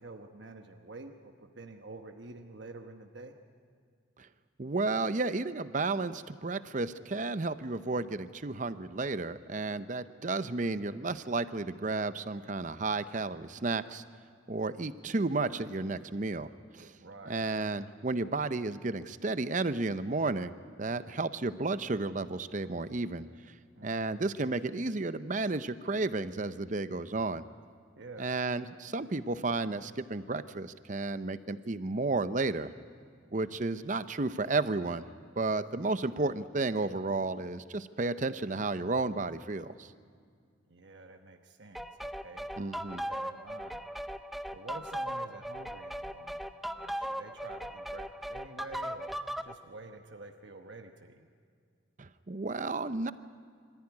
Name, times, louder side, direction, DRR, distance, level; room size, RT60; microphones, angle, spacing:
voice 1, 0.0-3.3 17.0-17.4 23.7-24.1 27.9-28.3 33.3-33.6 40.7-42.5 42.9-43.8 44.5-46.4 46.7-49.1 49.4-51.3, right 2 dB, 65° right, 4 dB, 1.1 m, -48 dB
voice 2, 4.6-14.0 14.5-16.9 17.3-20.5 20.8-23.3 23.8-27.4 28.2-32.7 33.3-35.1 35.4-39.9 42.6-43.1 52.0-53.1, right 3 dB, 40° right, 13 dB, 0.7 m, -32 dB
sound 1, 41.8-49.5, equal, ahead, 0.5 m, -38 dB
26.0 x 14.5 x 9.8 m, 2.1 s
head